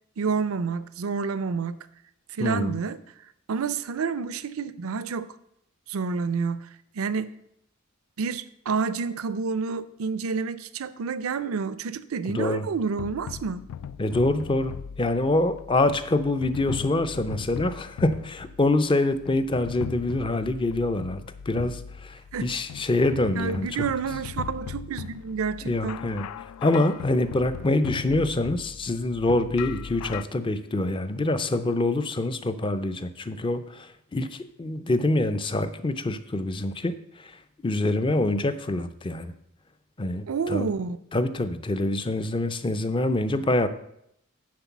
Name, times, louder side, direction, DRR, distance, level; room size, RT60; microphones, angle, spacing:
voice 1, 0.2-1.8 2.3-3.0 3.5-5.4 5.9-6.7 6.9-7.3 8.2-13.7 22.3-22.5 23.3-26.0 40.3-41.0, right 5 dB, 70° right, 0.5 m, -29 dB
voice 2, 2.4-2.8 12.3-12.7 14.0-23.9 25.6-26.3 26.6-39.3 40.0-40.7 41.1-43.7, left 2 dB, 25° left, 0.4 m, -25 dB
sound 1, 12.7-30.2, left 7 dB, 85° left, 0.3 m, -39 dB
9.6 x 3.9 x 7.1 m
head